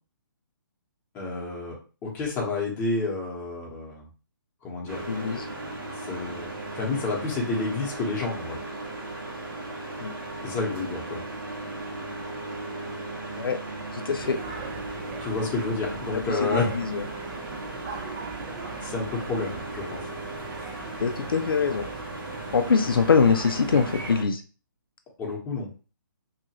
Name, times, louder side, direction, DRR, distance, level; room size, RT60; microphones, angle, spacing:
voice 1, 1.1-4.1 4.6-5.1 6.0-6.5 6.7-8.6 10.4-11.2 15.2-16.7 18.8-20.1 25.2-25.7, left 3 dB, 15° left, -2 dB, 1.0 m, -30 dB
sound 1, 4.9-24.2, right 2 dB, 80° right, 1.3 m, -37 dB
voice 2, 5.1-5.5 10.0-10.1 13.4-13.6 13.9-14.4 16.1-17.0 21.0-21.9 22.5-24.4, left 5 dB, 85° left, 7 dB, 0.5 m, -23 dB
sound 2, 14.2-24.1, right 5 dB, 30° right, 0.5 m, -41 dB
2.9 x 2.4 x 2.9 m, 0.34 s
hypercardioid pair, 145°, 12 cm